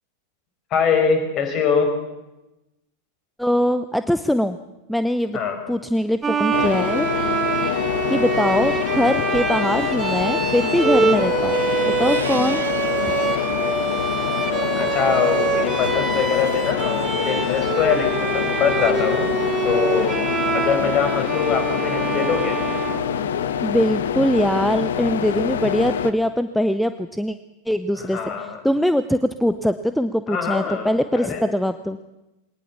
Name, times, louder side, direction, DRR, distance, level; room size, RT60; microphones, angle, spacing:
voice 1, 0.7-1.9 5.3-5.6 14.7-19.3 19.6-20.2 20.5-22.6 27.9-28.6 30.3-31.5, left 6 dB, 35° left, 6 dB, 5.2 m, -23 dB
voice 2, 3.4-4.6 4.9-5.4 5.7-7.8 8.1-12.7 23.6-27.4 27.7-28.2 28.6-32.0, equal, ahead, 11 dB, 0.8 m, -22 dB
Bowed string instrument, 6.2-23.6, right 5 dB, 15° right, 1.6 m, -25 dB
sound 1, 6.5-26.1, left 9 dB, 60° left, 1.3 m, -25 dB
sound 2, 11.3-13.6 14.1-16.9, right 7 dB, 70° right, 1.3 m, -39 dB
22.0 x 19.0 x 7.2 m, 0.97 s
figure-of-eight pair, 90°, 0 cm